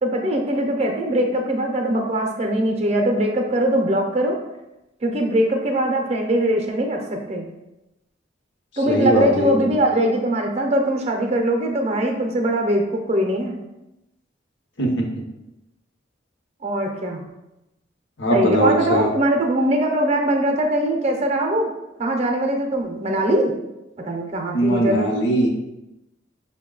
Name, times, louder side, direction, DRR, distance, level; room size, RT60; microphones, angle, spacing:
voice 1, 0.0-4.4 5.0-7.5 8.8-13.6 16.6-17.2 18.3-21.7 22.0-23.5 24.0-25.1, right 1 dB, 35° right, 3 dB, 0.6 m, -21 dB
voice 2, 8.9-9.7 14.8-15.0 18.2-19.1 24.5-25.5, equal, 70° left, 0 dB, 0.9 m, -20 dB
5.4 x 2.2 x 3.8 m, 0.94 s
head